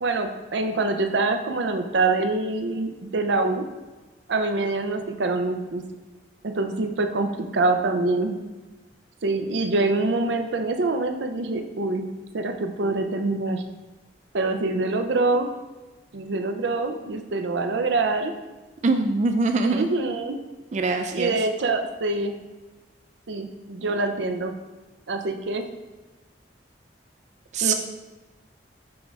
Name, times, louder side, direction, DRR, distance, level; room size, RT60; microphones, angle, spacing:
voice 1, 0.0-3.6 4.3-5.8 6.4-8.4 9.2-12.1 12.3-13.6 14.3-15.5 16.1-18.3 19.6-20.4 21.1-22.3 23.3-24.6 25.1-25.6 27.6-27.7, right 3 dB, 85° right, 6 dB, 0.6 m, -25 dB
voice 2, 18.8-19.8 20.7-21.3 27.5-27.7, right 3 dB, 40° right, 6 dB, 0.3 m, -23 dB
6.1 x 3.7 x 4.7 m, 1.2 s
head